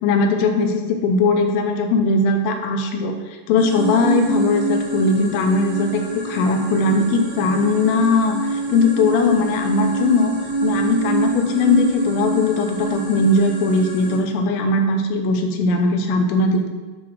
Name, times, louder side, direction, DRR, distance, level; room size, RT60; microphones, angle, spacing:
voice 1, 0.0-3.2 3.5-10.3 10.6-16.7, left 3 dB, 85° left, 4 dB, 3.7 m, -19 dB
sound 1, 3.6-14.2, right 2 dB, 35° right, 3.5 m, -26 dB
9.5 x 6.2 x 6.1 m, 1.3 s
omnidirectional pair, 5.7 m